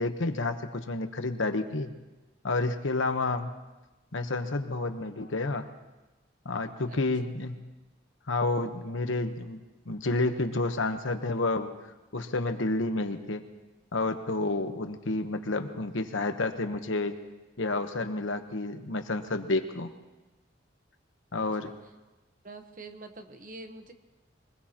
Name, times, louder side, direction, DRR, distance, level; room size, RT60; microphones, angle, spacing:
voice 1, 0.0-1.9 2.4-3.5 4.1-5.6 6.4-7.6 8.3-9.6 9.9-11.7 12.1-13.4 13.9-17.2 17.6-19.9 21.3-21.7, left 2 dB, 80° left, 7 dB, 1.1 m, -30 dB
voice 2, 21.3-21.9 22.4-23.9, right 2 dB, 45° right, 7 dB, 1.1 m, -46 dB
23.5 x 20.0 x 3.0 m, 1.1 s
head